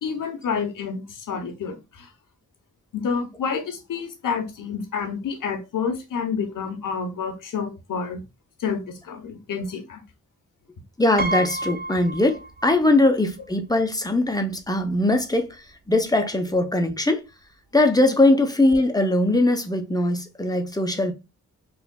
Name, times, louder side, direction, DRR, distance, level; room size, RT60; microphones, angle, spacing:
voice 1, 0.0-2.1 2.9-8.2 8.6-10.0, left 6 dB, 75° left, 0.9 m, -29 dB
voice 2, 11.0-15.5 15.9-17.2 17.7-21.1, left 2 dB, 10° left, 0.7 m, -21 dB
Piano, 11.2-13.0 13.3-13.4 14.6-14.7 15.0-15.2, right 2 dB, 30° right, 0.5 m, -30 dB
4.7 x 2.5 x 2.3 m
cardioid pair, 55°, 32 cm